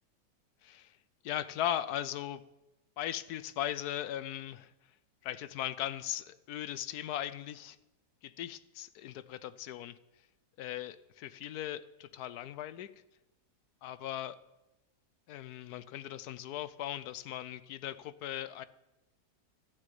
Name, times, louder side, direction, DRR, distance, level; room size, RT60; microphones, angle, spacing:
voice 1, 0.6-1.0 1.2-2.4 3.0-4.7 5.2-7.8 8.2-10.0 10.6-12.9 13.8-14.4 15.3-18.6, left 12 dB, 70° left, 15 dB, 1.1 m, -38 dB
13.0 x 6.5 x 9.1 m, 0.95 s
omnidirectional pair, 1.8 m